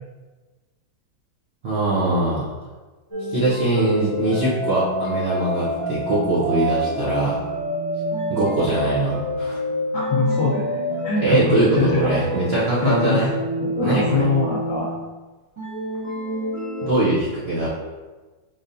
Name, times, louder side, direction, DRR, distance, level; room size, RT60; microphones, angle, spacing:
voice 1, 1.6-2.5 3.3-7.4 8.3-9.6 11.2-13.3 13.8-14.3 16.8-17.7, right 2 dB, 85° right, -8 dB, 0.5 m, -21 dB
sound 1, 3.1-15.1 15.6-16.9, equal, 30° right, 0.5 m, -28 dB
voice 2, 9.9-12.1 12.8-13.2 13.6-14.9, left 3 dB, 55° left, -6 dB, 1.0 m, -23 dB
4.1 x 3.2 x 2.6 m, 1.3 s
omnidirectional pair, 2.0 m